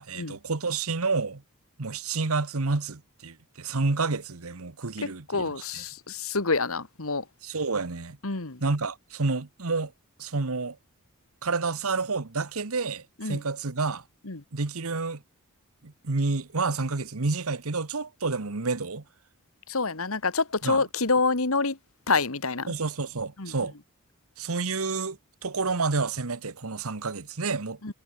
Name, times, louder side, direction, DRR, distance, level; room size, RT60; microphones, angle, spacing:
voice 1, 0.0-1.4 1.8-5.8 7.4-8.2 8.6-9.9 10.2-10.8 11.4-14.0 14.5-15.2 15.8-19.0 20.6-20.8 22.7-23.7 24.4-27.9, right 3 dB, 75° right, 1.2 m, -29 dB
voice 2, 5.0-7.3 8.2-8.6 13.2-13.4 14.2-14.4 19.7-21.8 22.1-22.7 23.4-23.5 27.8-27.9, left 3 dB, 70° left, 1.9 m, -27 dB
head